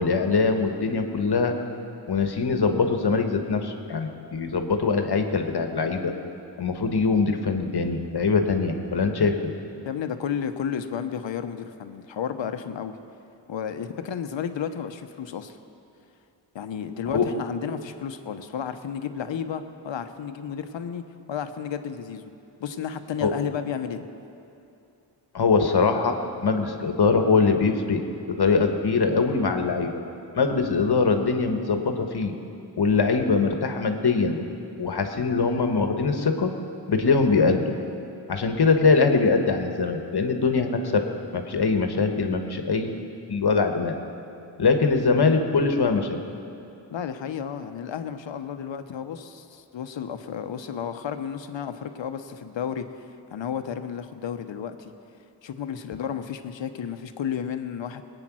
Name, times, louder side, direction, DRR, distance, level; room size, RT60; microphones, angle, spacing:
voice 1, 0.0-1.5 2.1-6.1 6.6-9.5 17.1-17.3 23.2-23.3 25.3-26.2 26.4-28.0 28.3-29.9 30.3-32.3 32.8-34.4 34.8-36.5 36.9-37.6 38.3-41.0 41.3-44.0 44.6-46.2, left 4 dB, 60° left, 5 dB, 1.5 m, -22 dB
voice 2, 9.8-12.9 13.5-15.6 16.5-22.3 22.6-24.0 46.9-54.9 55.4-58.0, left 8 dB, 75° left, 9 dB, 1.0 m, -32 dB
20.5 x 9.0 x 6.2 m, 2.7 s
cardioid pair, 55°, 45 cm